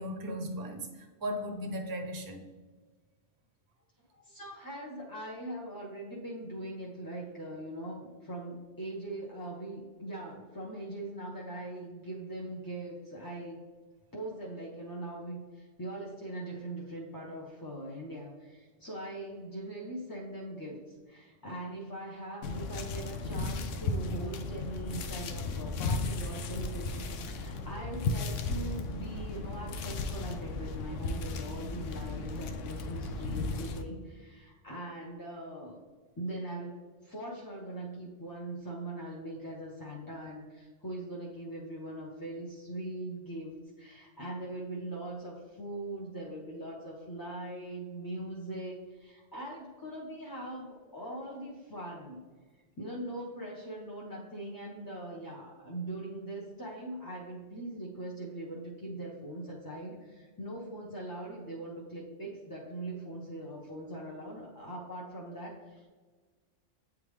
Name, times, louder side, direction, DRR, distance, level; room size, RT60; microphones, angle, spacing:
voice 1, 0.0-2.4, equal, 20° right, 3 dB, 0.6 m, -37 dB
voice 2, 4.2-13.6 14.1-35.8 36.2-52.2 52.8-65.9, right 1 dB, 20° left, -3 dB, 0.6 m, -41 dB
sound 1, 22.4-33.8, left 3 dB, 80° left, 0.9 m, -35 dB
8.3 x 3.6 x 3.2 m, 1.4 s
omnidirectional pair, 1.3 m